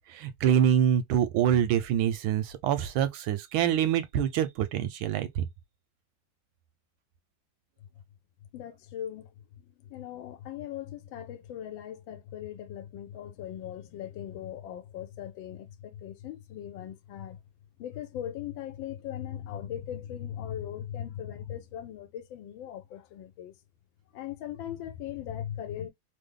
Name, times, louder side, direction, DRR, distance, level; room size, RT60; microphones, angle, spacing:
voice 1, 0.1-5.4, right 9 dB, 85° right, 1.4 m, -25 dB
voice 2, 8.5-9.3 9.6-17.4 17.8-23.6 24.1-25.9, left 10 dB, 75° left, 1.4 m, -39 dB
3.5 x 2.0 x 3.6 m
omnidirectional pair, 2.2 m